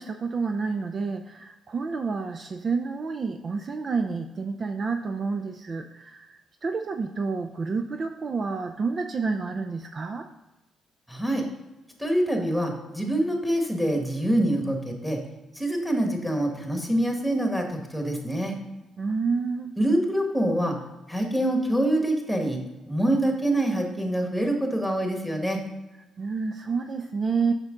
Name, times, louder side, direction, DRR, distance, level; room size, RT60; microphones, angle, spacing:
voice 1, 0.0-10.3 19.0-19.8 26.2-27.5, right 4 dB, 40° right, 6 dB, 0.4 m, -29 dB
voice 2, 11.1-11.5 12.0-15.2 15.5-18.5 19.8-20.8 21.1-22.6 22.9-25.6, right 1 dB, ahead, 2 dB, 1.6 m, -25 dB
6.6 x 5.9 x 3.8 m, 1.0 s
cardioid pair, 90°, 0 cm